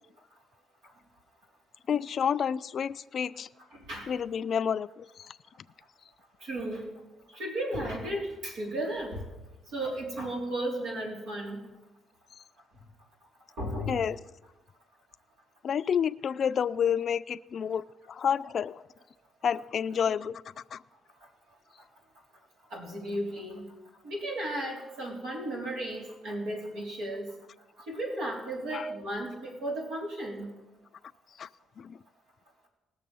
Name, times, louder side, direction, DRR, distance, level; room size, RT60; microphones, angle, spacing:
voice 1, 1.9-3.5 4.1-5.4 13.9-14.2 15.6-18.8 19.4-20.4 20.7-20.8 28.7-28.9 31.4-31.5 31.8-32.0, left 8 dB, 55° left, 15 dB, 0.4 m, -29 dB
voice 2, 6.4-6.9 7.3-9.2 9.7-11.6 13.6-14.0 22.7-23.6 24.0-27.3 27.9-30.5, right 1 dB, 85° right, -2 dB, 3.5 m, -34 dB
19.5 x 6.9 x 5.4 m, 1.1 s
cardioid pair, 90°, 0 cm